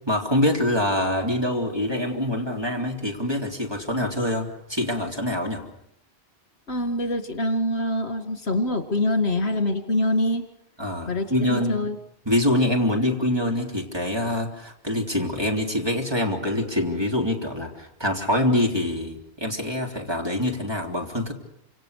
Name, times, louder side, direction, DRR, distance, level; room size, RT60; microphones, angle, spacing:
voice 1, 0.1-5.6 10.8-11.8 12.3-21.3, left 1 dB, 25° right, 1 dB, 3.5 m, -25 dB
voice 2, 6.7-10.5 11.1-12.0, left 1 dB, 70° left, 8 dB, 2.5 m, -25 dB
28.5 x 27.0 x 6.7 m, 0.74 s
omnidirectional pair, 1.1 m